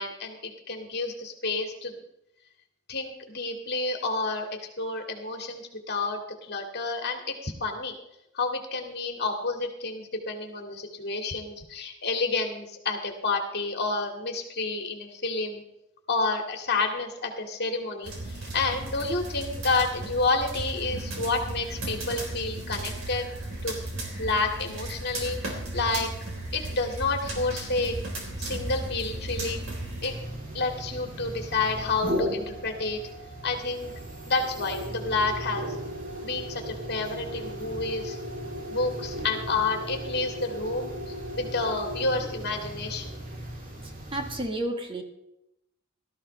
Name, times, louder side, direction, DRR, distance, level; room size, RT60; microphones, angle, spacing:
voice 1, 0.0-2.0 2.9-4.5 4.8-8.0 8.3-15.6 16.1-23.3 23.6-23.8 24.2-25.4 25.7-26.1 26.5-28.0 28.4-29.7 30.0-30.1 30.5-33.0 33.4-33.9 34.3-35.7 36.2-38.2 38.7-43.2, left 3 dB, 55° left, 3 dB, 2.2 m, -29 dB
sound 1, 18.0-30.1, right 2 dB, 75° right, 3.8 m, -35 dB
sound 2, 30.0-44.5, equal, 45° right, 3.3 m, -36 dB
voice 2, 44.1-45.0, right 1 dB, 25° right, 4 dB, 1.5 m, -31 dB
18.0 x 13.5 x 3.3 m, 0.83 s
head